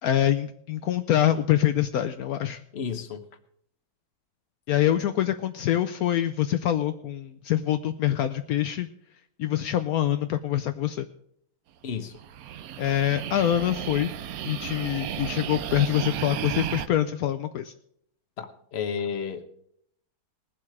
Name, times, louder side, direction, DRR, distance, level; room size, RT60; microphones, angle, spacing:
voice 1, 0.0-2.6 4.7-8.9 9.4-11.1 12.8-14.1 14.4-17.7, left 11 dB, 75° left, 9 dB, 0.8 m, -25 dB
voice 2, 2.7-3.2 11.8-12.2 18.4-19.4, left 6 dB, 40° left, 9 dB, 1.0 m, -32 dB
sound 1, 12.2-16.9, right 10 dB, 70° right, 0.9 m, -34 dB
20.0 x 7.6 x 4.8 m, 0.69 s
omnidirectional pair, 2.2 m